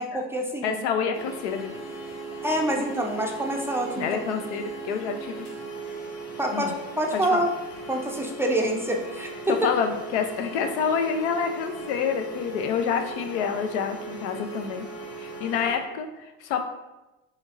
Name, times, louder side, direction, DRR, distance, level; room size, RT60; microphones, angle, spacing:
voice 1, 0.0-0.8 2.4-4.1 6.4-7.5 7.9-9.7, right 1 dB, 5° right, 0 dB, 0.4 m, -26 dB
voice 2, 0.6-1.7 2.8-2.9 4.0-5.5 6.5-6.7 7.3-7.5 9.5-14.9 15.2-16.6, left 7 dB, 85° left, 6 dB, 0.6 m, -28 dB
sound 1, 1.1-15.8, right 3 dB, 50° left, 1.1 m, -38 dB
5.1 x 3.2 x 2.5 m, 1.0 s
supercardioid pair, 110°, 34 cm